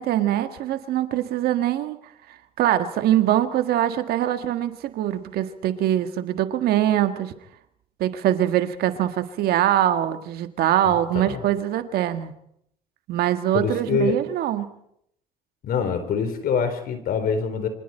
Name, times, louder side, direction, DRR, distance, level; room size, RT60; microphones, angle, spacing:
voice 1, 0.0-2.0 2.6-7.3 8.0-12.3 13.1-14.7, right 12 dB, 70° right, 9 dB, 1.6 m, -23 dB
voice 2, 13.5-14.2 15.6-17.7, left 5 dB, 65° left, 9 dB, 4.1 m, -24 dB
27.0 x 24.5 x 4.5 m, 0.73 s
supercardioid pair, 65°, 16 cm